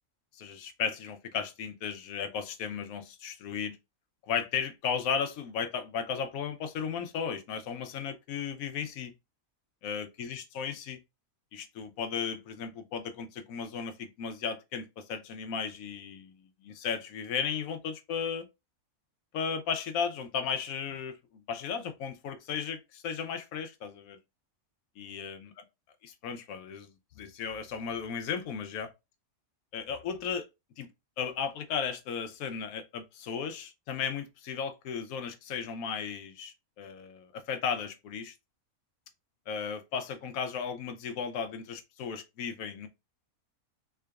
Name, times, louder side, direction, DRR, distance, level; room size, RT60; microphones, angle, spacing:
voice 1, 0.3-3.8 4.3-9.1 9.8-11.0 11.5-18.4 19.3-24.2 25.0-25.5 26.0-28.9 29.7-30.5 30.8-30.9 31.2-38.3 39.5-42.9, left 6 dB, 70° left, 1.0 m, -35 dB
3.7 x 3.4 x 2.3 m
omnidirectional pair, 1.6 m